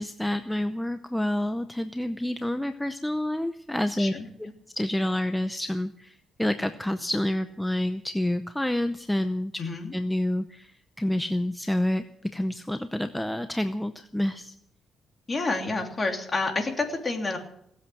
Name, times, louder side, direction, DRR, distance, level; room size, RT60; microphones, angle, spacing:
voice 1, 0.0-4.1 4.8-9.5 9.9-14.5, left 1 dB, 5° left, 10 dB, 0.7 m, -28 dB
voice 2, 9.6-9.9 15.3-17.4, left 3 dB, 30° left, 3 dB, 3.0 m, -29 dB
18.0 x 8.0 x 7.8 m, 0.72 s
cardioid pair, 90°, 0 cm